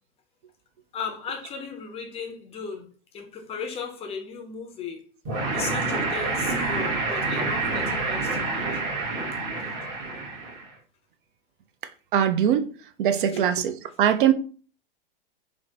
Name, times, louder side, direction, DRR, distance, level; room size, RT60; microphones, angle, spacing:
voice 1, 0.9-2.9 3.1-5.1 5.5-8.7 13.3-13.5, left 5 dB, 20° left, 0.5 m, -36 dB
sound 1, 5.2-10.7, right 3 dB, 40° right, 1.2 m, -28 dB
voice 2, 12.1-12.6 13.0-14.3, right 9 dB, 65° right, 0.4 m, -21 dB
3.2 x 2.0 x 2.7 m
hypercardioid pair, 105°, 29 cm